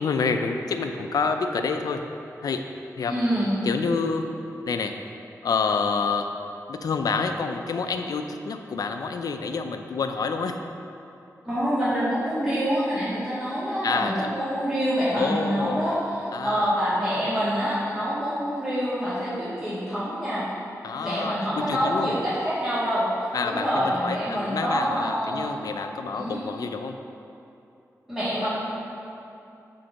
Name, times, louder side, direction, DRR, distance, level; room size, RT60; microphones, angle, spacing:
voice 1, 0.0-2.0 2.4-2.6 3.0-3.1 3.6-4.3 4.7-4.9 5.4-6.3 6.7-10.6 13.8-14.1 15.1-16.0 16.3-16.7 20.8-22.1 23.3-27.0, left 5 dB, 85° left, 6 dB, 0.4 m, -28 dB
voice 2, 3.1-3.5 11.5-20.5 21.0-25.5 26.1-26.4 28.1-28.5, equal, 5° right, -12 dB, 1.7 m, -26 dB
7.8 x 3.9 x 5.2 m, 2.8 s
wide cardioid pair, 85°, 6 cm